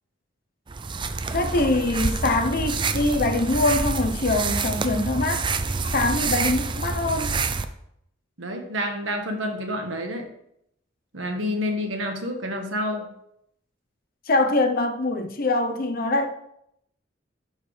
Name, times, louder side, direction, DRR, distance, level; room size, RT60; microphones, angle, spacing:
sound 1, 0.7-7.7, right 4 dB, 25° right, 0.4 m, -27 dB
voice 1, 1.3-5.4 5.9-7.3 14.3-16.3, left 2 dB, 50° left, 6 dB, 0.9 m, -23 dB
voice 2, 8.4-10.3 11.1-13.1, left 1 dB, 80° right, 3 dB, 1.5 m, -28 dB
13.0 x 4.8 x 3.3 m, 0.75 s
head